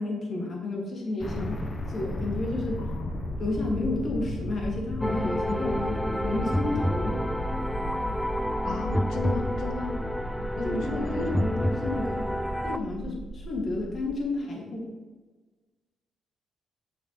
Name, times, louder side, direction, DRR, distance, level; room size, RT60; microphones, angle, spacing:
voice 1, 0.0-1.6 1.9-2.8 3.4-7.2 10.6-12.3 12.6-14.9, left 2 dB, 45° left, -1 dB, 2.2 m, -31 dB
sound 1, 1.2-14.2, equal, 25° left, 0.8 m, -35 dB
voice 2, 2.8-3.3 8.6-10.0 10.6-11.5, left 3 dB, 80° left, 5 dB, 1.0 m, -36 dB
sound 2, 5.0-12.8, equal, 5° left, 0.3 m, -29 dB
7.8 x 6.7 x 3.1 m, 1.3 s
cardioid pair, 90°, 0 cm